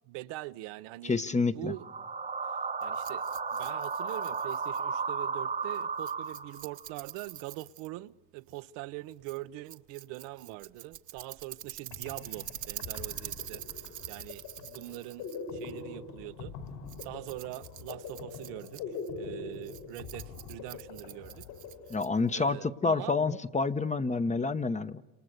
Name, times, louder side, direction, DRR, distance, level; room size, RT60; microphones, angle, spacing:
voice 1, 0.1-1.2 1.5-1.9 2.8-3.2 3.5-16.5 17.0-21.5 22.3-23.2, right 18 dB, 70° right, 0.9 m, -43 dB
voice 2, 1.0-1.7 21.9-25.0, left 4 dB, 15° left, 0.9 m, -28 dB
sound 1, 1.7-6.8, right 5 dB, 15° right, 1.3 m, -34 dB
Rattle, 2.8-22.4, right 12 dB, 45° right, 1.2 m, -46 dB
sound 2, 11.6-11.7 11.9-22.5, left 5 dB, 70° left, 6.2 m, -43 dB
30.0 x 28.0 x 6.7 m
supercardioid pair, 105°, 44 cm